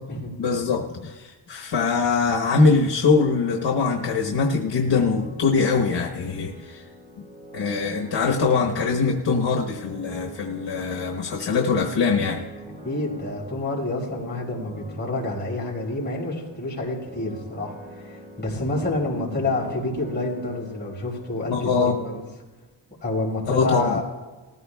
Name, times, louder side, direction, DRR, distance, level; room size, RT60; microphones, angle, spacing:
voice 1, 0.4-6.8 7.5-12.4 21.5-21.9 23.5-24.0, left 4 dB, 75° left, 0 dB, 1.1 m, -22 dB
sound 1, 3.0-22.2, equal, 15° right, 3.8 m, -44 dB
voice 2, 12.8-17.7 18.0-22.2 23.0-24.0, left 2 dB, 25° left, -4 dB, 4.9 m, -28 dB
19.5 x 15.0 x 2.3 m, 1.2 s
wide cardioid pair, 115°, 43 cm